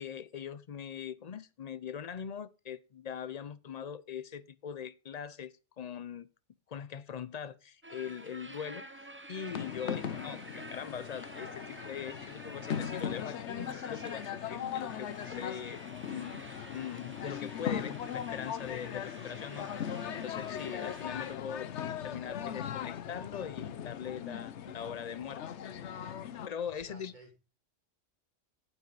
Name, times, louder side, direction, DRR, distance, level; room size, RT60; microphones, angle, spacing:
voice 1, 0.0-6.3 6.7-8.9 9.3-15.8 16.1-25.5 25.9-26.1 26.5-27.1, left 8 dB, 50° left, 0.5 m, -42 dB
sound 1, 7.8-21.4, right 1 dB, 15° right, 0.6 m, -50 dB
sound 2, 9.5-26.5, left 9 dB, 70° left, 1.0 m, -39 dB
voice 2, 26.6-27.4, right 1 dB, 40° right, 3.6 m, -54 dB
9.2 x 8.1 x 4.7 m
omnidirectional pair, 1.2 m